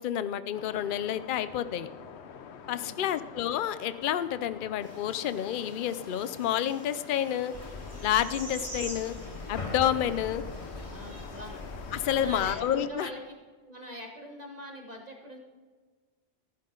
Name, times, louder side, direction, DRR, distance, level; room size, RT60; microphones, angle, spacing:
voice 1, 0.0-1.9 2.7-7.5 8.0-9.2 9.5-10.4 11.9-13.1, left 10 dB, 60° left, 13 dB, 0.7 m, -29 dB
sound 1, 0.5-12.9, left 7 dB, 85° left, 1.0 m, -47 dB
voice 2, 2.8-3.2 10.9-11.6 12.1-13.2 13.7-15.4, equal, 40° right, 1 dB, 1.5 m, -43 dB
sound 2, 4.8-12.3, right 1 dB, 70° right, 2.7 m, -47 dB
sound 3, 7.5-12.6, left 2 dB, 30° left, 1.3 m, -41 dB
14.0 x 11.5 x 3.8 m, 1.4 s
omnidirectional pair, 1.1 m